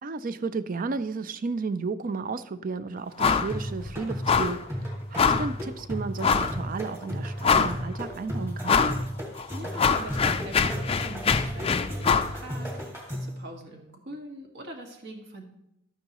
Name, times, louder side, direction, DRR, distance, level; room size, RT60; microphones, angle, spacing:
voice 1, 0.0-8.9, right 4 dB, 40° right, 0.4 m, -33 dB
sound 1, 3.2-3.5 3.8-3.9 4.3-4.6 5.2-5.5 6.2-6.6 7.0-7.1 7.4-8.0 8.7-9.0 9.4-12.3, left 6 dB, 30° left, 0.4 m, -23 dB
sound 2, 3.5-13.4, equal, 15° right, 2.0 m, -34 dB
voice 2, 9.5-15.4, right 1 dB, 60° right, 1.8 m, -42 dB
12.0 x 9.3 x 3.0 m
head